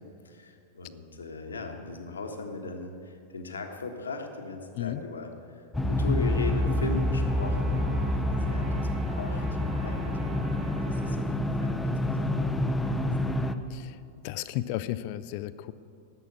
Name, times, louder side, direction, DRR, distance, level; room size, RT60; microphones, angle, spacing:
voice 1, 0.0-13.4, left 3 dB, 70° left, 4 dB, 1.4 m, -39 dB
sound 1, 5.7-13.5, left 1 dB, 10° left, 0.7 m, -27 dB
Trumpet, 6.2-11.2, right 4 dB, 40° right, 1.6 m, -46 dB
voice 2, 14.2-15.7, left 14 dB, 45° left, 15 dB, 0.5 m, -33 dB
11.0 x 8.3 x 9.5 m, 2.5 s
figure-of-eight pair, 90°, 0 cm